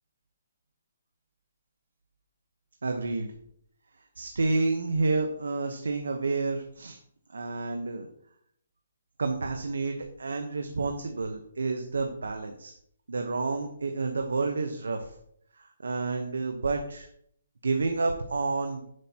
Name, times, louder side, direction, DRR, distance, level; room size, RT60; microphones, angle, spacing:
voice 1, 2.8-3.3 4.2-7.0 7.3-8.1 9.2-12.7 13.1-15.1 15.5-17.1 17.6-18.8, right 3 dB, 90° right, 5 dB, 1.0 m, -29 dB
9.8 x 8.1 x 3.0 m, 0.69 s
hypercardioid pair, 165°, 0 cm